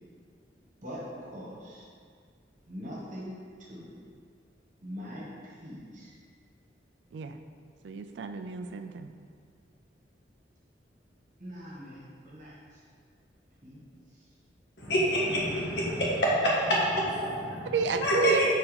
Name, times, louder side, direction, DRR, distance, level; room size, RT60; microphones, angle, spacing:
voice 1, 0.8-1.8 2.7-3.3 3.7-3.9 4.8-6.2 11.4-12.5 13.6-13.8, equal, 45° right, -5 dB, 1.5 m, -42 dB
voice 2, 7.8-9.1 17.7-18.5, right 5 dB, 80° right, 7 dB, 0.3 m, -30 dB
voice 3, 14.8-18.5, equal, 75° left, -6 dB, 1.6 m, -27 dB
4.7 x 4.2 x 5.1 m, 2.1 s
head